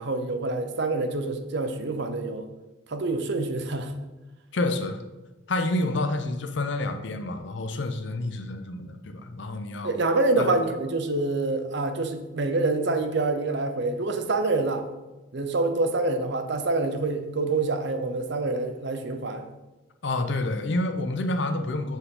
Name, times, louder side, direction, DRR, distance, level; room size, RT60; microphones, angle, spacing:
voice 1, 0.0-2.4 2.9-3.9 9.8-14.9 15.3-19.5, right 2 dB, 55° right, 7 dB, 0.7 m, -26 dB
voice 2, 4.5-5.0 5.5-9.9 10.4-10.5 20.0-22.0, left 2 dB, 60° left, 7 dB, 0.6 m, -28 dB
6.8 x 4.5 x 3.8 m, 1.1 s
head